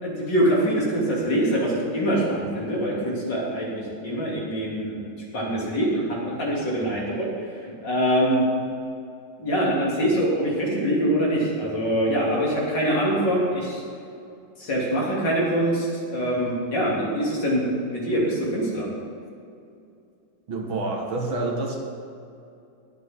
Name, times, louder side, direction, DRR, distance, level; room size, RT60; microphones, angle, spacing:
voice 1, 0.0-5.0 5.3-8.4 9.4-13.8 14.6-18.9, right 1 dB, 60° left, -5 dB, 3.7 m, -24 dB
voice 2, 20.5-21.8, right 2 dB, 85° right, -1 dB, 2.6 m, -27 dB
20.5 x 8.3 x 3.8 m, 2.5 s
omnidirectional pair, 2.2 m